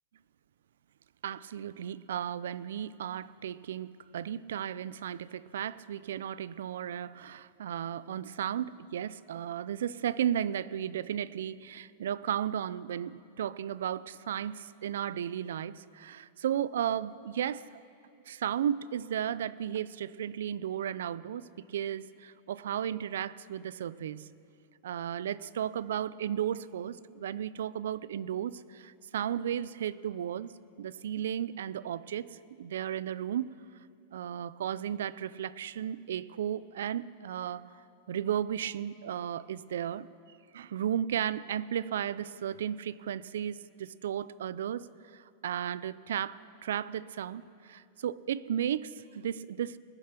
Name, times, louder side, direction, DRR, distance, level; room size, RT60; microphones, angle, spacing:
voice 1, 1.2-17.8 18.3-21.4 21.7-24.3 24.8-30.5 30.8-33.5 34.1-37.7 38.1-40.1 40.5-44.9 45.1-49.8, right 9 dB, 90° right, 19 dB, 0.4 m, -34 dB
20.0 x 6.8 x 6.6 m, 2.5 s
supercardioid pair, 165°, 0 cm